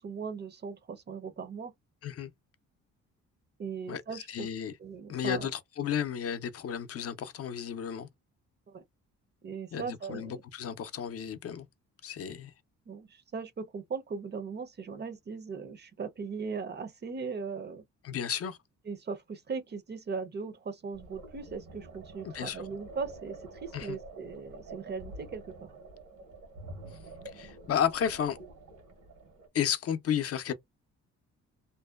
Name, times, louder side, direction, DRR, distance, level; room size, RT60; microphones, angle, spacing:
voice 1, 0.0-1.7 3.6-4.5 4.8-5.5 8.7-8.8 9.4-10.4 12.9-17.8 18.9-25.7, right 5 dB, 35° right, 0.5 m, -39 dB
voice 2, 3.9-4.7 5.1-8.1 9.7-11.7 12.0-12.5 18.0-18.6 22.2-22.6 23.7-24.0 27.3-28.4 29.5-30.5, left 8 dB, 50° left, 0.5 m, -33 dB
sound 1, 20.9-29.5, right 2 dB, 85° right, 1.2 m, -48 dB
2.6 x 2.1 x 2.3 m
cardioid pair, 90°, 30 cm